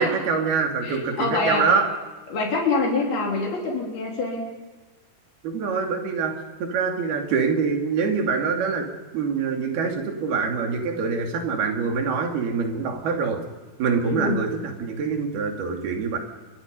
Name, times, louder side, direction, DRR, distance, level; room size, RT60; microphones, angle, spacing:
voice 1, 0.0-1.9 5.4-13.4 13.8-16.2, right 5 dB, 80° right, 3 dB, 4.7 m, -25 dB
voice 2, 0.8-1.7 2.3-4.5 14.0-14.4, left 3 dB, 75° left, -1 dB, 5.3 m, -25 dB
28.0 x 24.0 x 5.5 m, 1.3 s
omnidirectional pair, 4.4 m